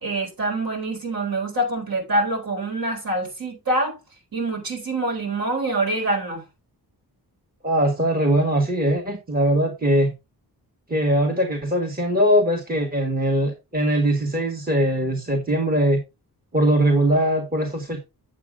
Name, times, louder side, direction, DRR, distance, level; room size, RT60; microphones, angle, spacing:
voice 1, 0.0-4.0 4.3-6.4, right 2 dB, 65° right, 4.2 m, -25 dB
voice 2, 7.6-10.1 10.9-16.0 16.5-18.0, right 1 dB, 25° right, 1.7 m, -21 dB
8.2 x 7.7 x 3.6 m
wide cardioid pair, 160°, 38 cm